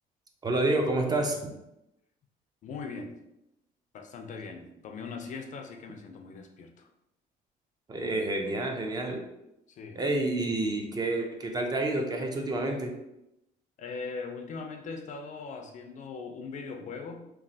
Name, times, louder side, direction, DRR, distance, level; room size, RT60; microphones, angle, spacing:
voice 1, 0.4-1.5 7.9-9.2 10.0-12.9, right 2 dB, 25° right, 2 dB, 0.4 m, -29 dB
voice 2, 2.6-3.2 3.9-6.9 9.7-10.0 13.8-17.3, left 4 dB, 45° left, 5 dB, 0.4 m, -40 dB
3.0 x 2.3 x 2.7 m, 0.88 s
cardioid pair, 110°, 17 cm